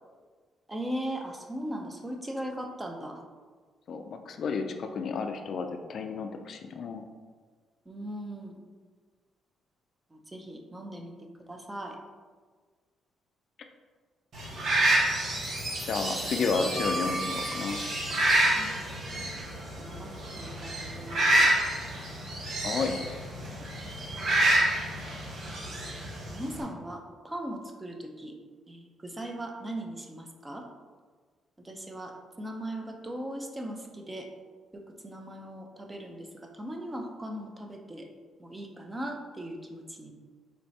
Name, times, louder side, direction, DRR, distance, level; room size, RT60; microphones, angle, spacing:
voice 1, 0.7-3.2 7.9-8.6 10.1-12.0 18.5-18.7 19.8-20.1 20.4-21.4 25.4-25.9 26.3-28.3 28.7-30.7 31.6-34.3 34.7-38.1 38.4-40.1, right 1 dB, 15° right, 2 dB, 0.6 m, -39 dB
voice 2, 3.9-7.0 15.8-17.8 22.6-23.0, left 4 dB, 60° left, 6 dB, 0.3 m, -31 dB
sound 1, 14.3-26.6, right 1 dB, 60° right, 1.0 m, -28 dB
Chime, 15.4-20.0, right 1 dB, 35° right, 1.4 m, -39 dB
sound 2, 16.8-18.9, right 1 dB, 80° right, 1.3 m, -38 dB
4.4 x 3.2 x 2.7 m, 1.5 s
cardioid pair, 90°, 0 cm